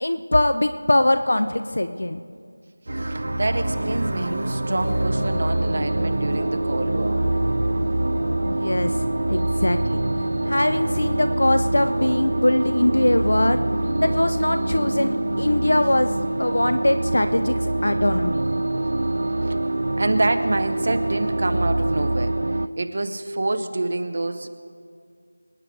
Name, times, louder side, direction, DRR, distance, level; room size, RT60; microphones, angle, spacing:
voice 1, 0.0-2.2 8.4-10.0 10.4-13.6 14.0-18.4, left 1 dB, 60° left, 9 dB, 0.6 m, -22 dB
voice 2, 2.9-7.2 18.7-18.8 19.4-24.5, right 2 dB, 35° right, 8 dB, 0.8 m, -27 dB
sound 1, 2.9-22.7, right 2 dB, 50° right, 0.3 m, -25 dB
sound 2, 3.0-22.2, left 1 dB, 10° left, 0.7 m, -36 dB
26.0 x 9.4 x 3.5 m, 2.2 s
figure-of-eight pair, 180°, 0 cm